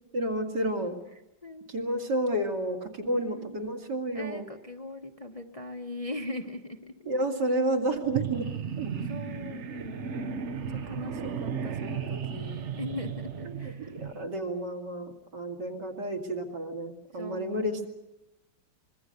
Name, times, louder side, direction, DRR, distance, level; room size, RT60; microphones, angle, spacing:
voice 1, 0.1-1.0 1.7-4.5 7.1-8.5 8.8-8.9 13.6-17.9, right 1 dB, 65° right, 2 dB, 3.1 m, -30 dB
voice 2, 1.4-1.9 3.0-3.5 4.1-7.1 9.0-10.2 10.7-14.1 17.1-17.9, left 1 dB, 25° left, 4 dB, 1.1 m, -40 dB
sound 1, 8.0-14.2, right 7 dB, 45° right, 1.0 m, -35 dB
25.5 x 22.0 x 6.7 m, 0.88 s
omnidirectional pair, 2.0 m